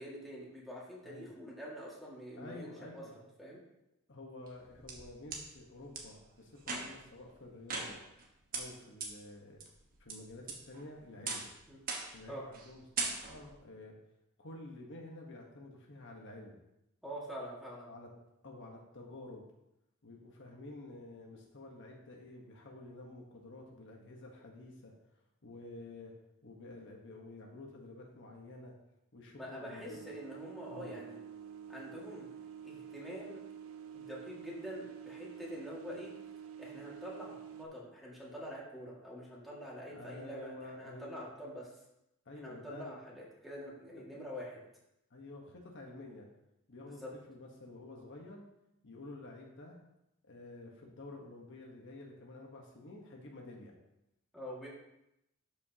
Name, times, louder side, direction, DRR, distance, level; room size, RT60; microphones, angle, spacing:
voice 1, 0.0-3.6 11.7-11.8 12.3-12.4 17.0-17.9 29.4-31.2 31.7-32.3 32.6-33.4 33.9-36.1 36.6-41.7 42.3-44.6 46.8-47.1 54.3-54.7, equal, ahead, -5 dB, 1.9 m, -46 dB
voice 2, 2.3-3.2 4.1-8.0 8.5-9.6 10.0-11.5 12.1-13.9 14.4-16.6 17.9-18.1 18.4-19.4 20.0-24.9 25.4-26.1 26.4-28.7 29.1-30.0 30.7-30.9 39.9-41.3 42.2-43.0 43.9-44.2 45.1-46.3 46.7-47.0 47.3-48.4 48.8-49.8 50.3-53.7, left 2 dB, 60° left, 0 dB, 1.2 m, -50 dB
sound 1, 4.5-5.4 5.9-6.0 6.6-7.1 7.7-8.2 8.5-8.6 9.0-9.1 9.6-10.1 10.5-10.9 11.3-11.5 11.9-12.2 12.5-12.7 13.0-13.5, right 4 dB, 40° right, 1.3 m, -39 dB
sound 2, 29.9-37.7, right 8 dB, 65° right, 0.6 m, -48 dB
12.0 x 5.3 x 2.8 m, 0.86 s
head